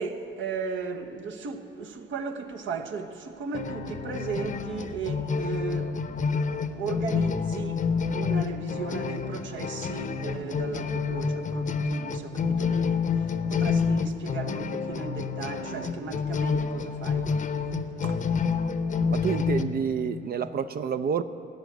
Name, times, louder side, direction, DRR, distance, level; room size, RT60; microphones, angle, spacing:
voice 1, 0.0-7.9 8.1-17.4 18.0-18.3, right 5 dB, 75° right, 1.0 m, -36 dB
sound 1, 3.5-19.6, left 5 dB, 40° left, 0.7 m, -28 dB
voice 2, 19.1-21.2, right 7 dB, 50° right, 0.5 m, -28 dB
17.5 x 6.2 x 9.2 m
cardioid pair, 90°, 20 cm